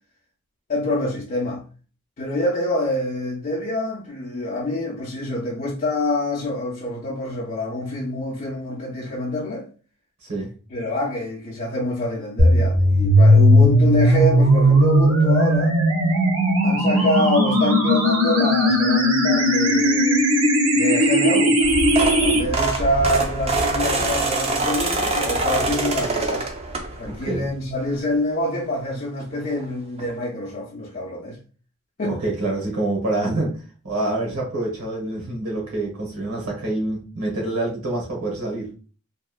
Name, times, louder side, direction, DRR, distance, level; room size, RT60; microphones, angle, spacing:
voice 1, 0.7-1.6 2.2-9.7 10.7-15.8 16.6-20.2 20.7-21.6 22.2-26.5 27.0-31.4 32.0-32.2, left 1 dB, 35° left, 0.4 m, -26 dB
sound 1, 12.4-22.4, equal, 60° right, 0.7 m, -17 dB
sound 2, 21.6-27.2 27.7-28.0 29.2-29.3 29.5-29.6 30.0-30.1, right 2 dB, 25° right, 0.3 m, -24 dB
voice 2, 27.1-27.5 32.0-38.7, right 2 dB, 85° right, 1.1 m, -26 dB
2.9 x 2.2 x 2.3 m
head